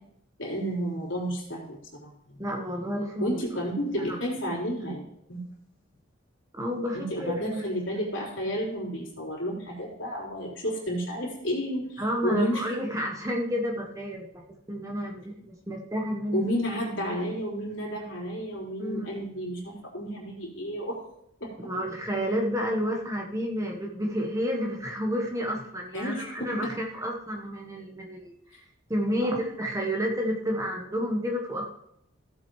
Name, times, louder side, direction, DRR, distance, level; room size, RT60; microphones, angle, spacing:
voice 1, 0.4-2.4 3.2-5.4 6.9-12.6 16.3-21.0 21.4-21.5 25.9-26.5 29.2-29.4, equal, 65° left, -4 dB, 3.7 m, -31 dB
voice 2, 2.4-3.4 3.9-4.2 6.5-7.6 12.0-14.4 14.7-16.4 17.1-17.2 18.8-19.1 21.6-28.3 28.9-31.7, equal, 15° right, 0 dB, 1.1 m, -30 dB
15.0 x 7.7 x 3.1 m, 0.74 s
head